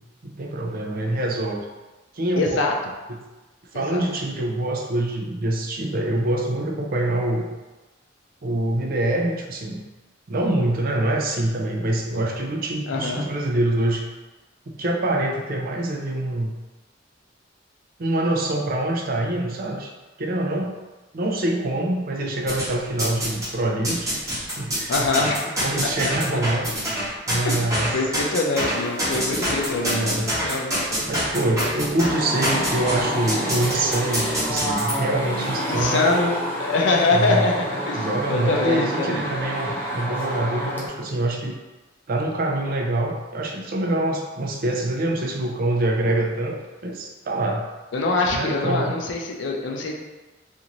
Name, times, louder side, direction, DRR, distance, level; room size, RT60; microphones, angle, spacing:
voice 1, 0.2-1.6 2.1-2.6 3.7-7.5 8.4-9.8 10.3-14.0 14.7-16.5 18.0-19.9 20.2-20.8 21.1-24.1 24.6-24.9 25.6-26.7 27.3-28.0 29.8-30.3 31.1-36.1 37.1-37.5 37.9-41.6 42.1-46.6 46.8-47.6 48.3-49.0, right 1 dB, 50° right, 0 dB, 0.4 m, -25 dB
voice 2, 2.4-2.7 3.7-4.0 12.9-13.3 24.9-25.4 25.8-26.1 27.4-31.1 35.7-36.3 36.6-39.3 47.9-50.0, left 3 dB, 70° left, 0 dB, 0.5 m, -24 dB
sound 1, 22.5-23.5 23.8-34.9, equal, 15° right, 0.9 m, -26 dB
sound 2, 32.0-40.9, equal, 10° left, 0.7 m, -28 dB
2.5 x 2.5 x 2.9 m, 1.2 s
head